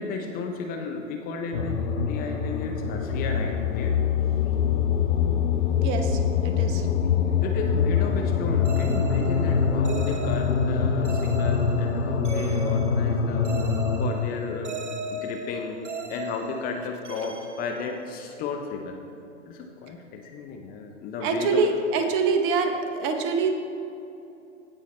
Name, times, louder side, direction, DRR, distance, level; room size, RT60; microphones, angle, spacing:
voice 1, 0.0-3.9 7.4-14.8 15.1-15.8 16.1-19.0 19.5-21.7, left 4 dB, 25° left, 3 dB, 0.6 m, -34 dB
sound 1, 1.5-14.1, left 6 dB, 80° left, 0.8 m, -24 dB
voice 2, 5.8-6.9 21.2-23.5, right 4 dB, 35° right, 5 dB, 0.9 m, -25 dB
sound 2, 8.6-18.5, right 3 dB, 65° right, 1.0 m, -38 dB
16.5 x 5.6 x 3.1 m, 2.8 s
figure-of-eight pair, 105°, 38 cm